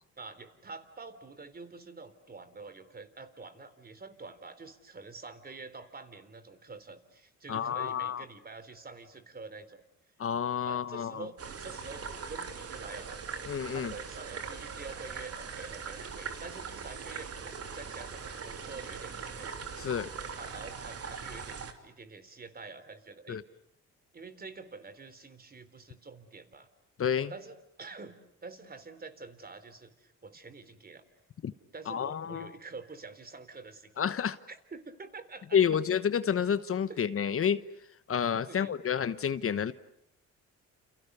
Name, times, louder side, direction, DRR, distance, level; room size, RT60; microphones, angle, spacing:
voice 1, 0.2-9.8 10.7-13.2 13.7-19.5 20.4-23.4 24.1-26.7 27.3-31.0 31.7-33.9 34.5-35.8 36.9-37.0 38.5-38.7, right 4 dB, 30° right, 11 dB, 3.7 m, -47 dB
voice 2, 7.5-8.2 10.2-11.3 13.5-13.9 19.8-20.1 23.3-23.4 27.0-27.3 31.4-31.5 31.9-32.5 34.0-34.4 35.5-37.6 38.1-39.7, left 8 dB, 45° left, 13 dB, 1.1 m, -29 dB
sound 1, 11.4-21.7, right 5 dB, 50° right, 3.3 m, -41 dB
29.5 x 29.5 x 6.8 m, 0.75 s
cardioid pair, 90°, 30 cm